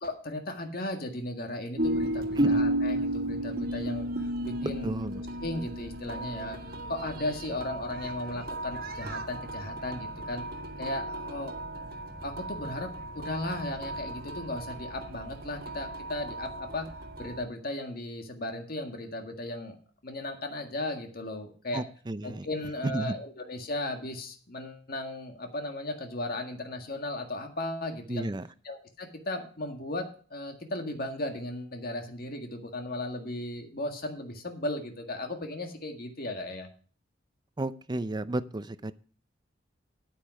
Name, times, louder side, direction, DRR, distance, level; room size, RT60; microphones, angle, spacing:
voice 1, 0.0-4.9 5.4-6.6 6.9-10.4 10.8-11.5 12.2-16.9 17.2-19.8 20.0-21.8 22.2-28.3 28.6-36.7, left 1 dB, 55° left, 5 dB, 1.8 m, -36 dB
sound 1, 1.8-17.4, right 1 dB, 55° right, 1.4 m, -34 dB
voice 2, 4.6-5.2 21.7-22.5 22.8-23.2 28.1-28.5 37.6-38.9, right 2 dB, 25° right, 14 dB, 0.5 m, -33 dB
9.3 x 9.1 x 4.8 m, 0.41 s
head